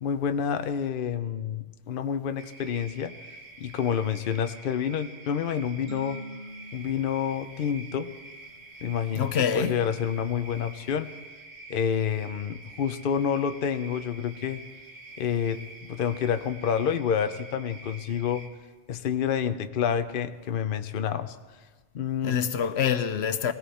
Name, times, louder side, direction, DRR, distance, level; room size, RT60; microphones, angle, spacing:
voice 1, 0.0-3.1 3.6-6.2 6.7-8.1 8.8-11.1 11.7-14.6 15.2-18.5 18.9-21.4 21.9-22.4, left 8 dB, 60° left, 0.8 m, -28 dB
sound 1, 2.4-18.5, right 2 dB, 80° right, 1.7 m, -47 dB
sound 2, 5.9-8.5, equal, 30° left, 6.0 m, -44 dB
voice 2, 9.1-9.8 22.2-23.5, left 8 dB, 85° left, 1.0 m, -26 dB
20.5 x 17.0 x 4.2 m
omnidirectional pair, 1.1 m